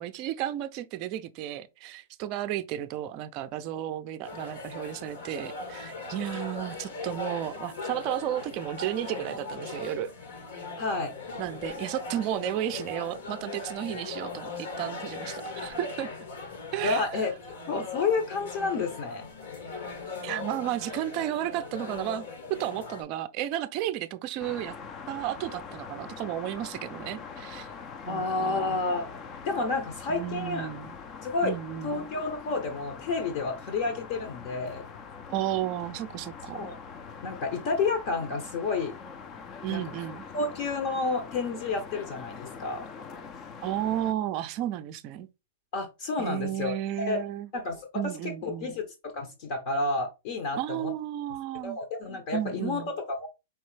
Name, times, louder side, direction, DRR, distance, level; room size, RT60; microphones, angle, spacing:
voice 1, 0.0-10.1 11.4-16.1 16.7-17.1 20.2-22.2 22.5-24.8 25.1-27.7 28.1-28.8 30.1-31.0 31.4-32.1 35.3-36.7 39.6-40.3 43.6-45.3 46.2-47.5 47.9-48.8 50.6-51.8 52.3-52.9, right 12 dB, 35° right, 0.4 m, -33 dB
sound 1, 4.2-23.0, left 3 dB, 75° left, 1.7 m, -39 dB
voice 2, 10.8-11.1 16.8-17.3 17.7-19.3 28.1-29.1 29.4-30.7 31.2-31.5 31.8-34.8 36.5-36.8 37.2-38.9 39.7-39.8 40.3-42.9 45.7-47.2 47.5-50.9 51.6-53.3, left 3 dB, 45° left, 0.9 m, -30 dB
sound 2, 24.4-44.1, left 5 dB, 30° left, 0.5 m, -43 dB
4.6 x 3.1 x 3.2 m
hypercardioid pair, 145°, 0 cm